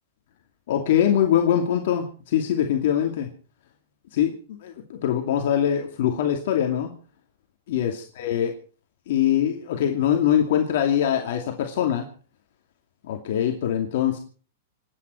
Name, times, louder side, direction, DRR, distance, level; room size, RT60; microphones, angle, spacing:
voice 1, 0.7-3.3 4.1-6.9 7.7-8.5 9.1-12.1 13.0-14.2, left 10 dB, 60° left, 3 dB, 2.5 m, -23 dB
27.5 x 9.5 x 4.6 m, 0.40 s
hypercardioid pair, 155°, 0 cm